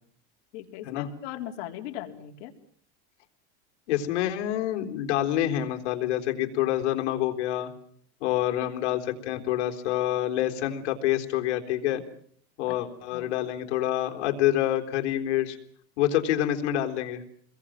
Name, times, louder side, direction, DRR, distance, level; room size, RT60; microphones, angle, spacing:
voice 1, 0.5-2.5 12.7-12.8 13.1-13.3, left 12 dB, 70° left, 4 dB, 3.9 m, -38 dB
voice 2, 3.9-7.7 8.2-12.0 12.6-15.6 16.0-17.2, left 12 dB, 85° left, 4 dB, 3.9 m, -27 dB
28.5 x 22.0 x 7.6 m, 0.62 s
supercardioid pair, 155°, 34 cm